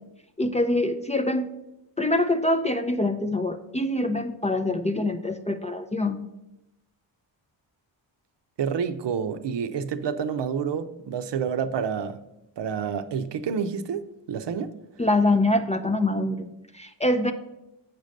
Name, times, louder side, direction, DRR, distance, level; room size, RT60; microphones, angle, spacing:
voice 1, 0.4-1.5 2.0-6.2 15.0-17.3, left 1 dB, 15° left, 0.4 m, -24 dB
voice 2, 8.6-12.2 12.6-14.8, right 7 dB, 65° right, 0.7 m, -29 dB
8.1 x 5.2 x 6.4 m
cardioid pair, 105°, 46 cm